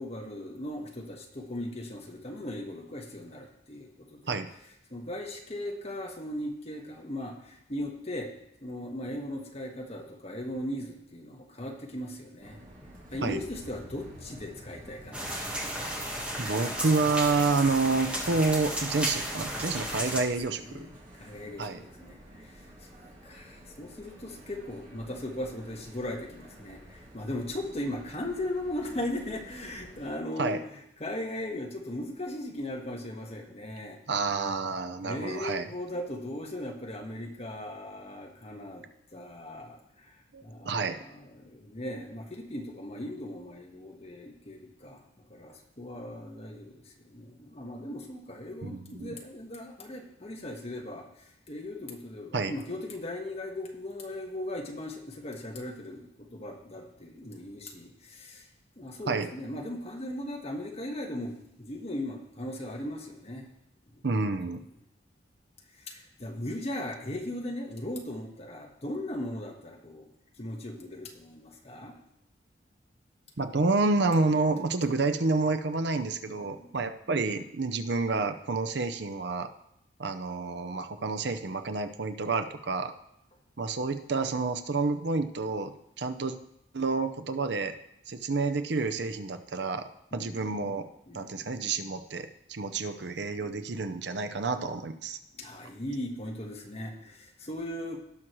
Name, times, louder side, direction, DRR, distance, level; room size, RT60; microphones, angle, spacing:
voice 1, 0.0-4.4 4.9-8.3 8.6-12.6 13.1-15.6 19.7-20.1 20.6-22.6 23.2-34.0 35.0-38.9 39.1-40.1 40.4-45.0 45.3-51.1 51.5-58.5 58.8-63.5 63.9-64.0 65.8-70.1 70.4-72.0 76.4-76.7 90.1-90.7 91.1-91.5 93.4-93.8 95.4-98.0, left 1 dB, 35° left, 1 dB, 1.4 m, -38 dB
sound 1, 12.4-30.1, equal, 45° right, 2.7 m, -50 dB
sound 2, 15.1-20.2, equal, 5° right, 1.5 m, -34 dB
voice 2, 16.4-20.9 21.6-21.8 30.4-30.6 34.1-35.7 40.3-41.0 48.6-49.2 52.3-52.5 59.1-59.3 64.0-64.6 73.4-79.5 80.0-82.9 83.6-86.4 86.7-87.8 88.1-90.9 91.1-95.2, right 3 dB, 65° right, 8 dB, 0.7 m, -29 dB
18.0 x 6.2 x 3.1 m, 0.78 s
head